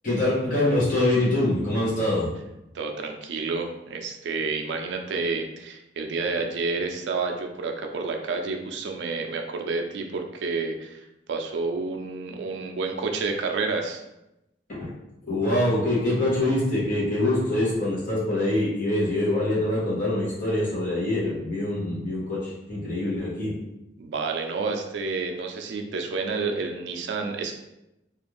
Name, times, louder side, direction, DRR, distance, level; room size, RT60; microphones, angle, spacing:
voice 1, 0.0-2.3 14.7-14.9 15.3-23.5, left 1 dB, 50° left, -8 dB, 0.9 m, -24 dB
voice 2, 2.7-14.0 24.0-27.5, right 4 dB, 75° right, 4 dB, 0.4 m, -29 dB
2.5 x 2.3 x 3.0 m, 0.90 s
head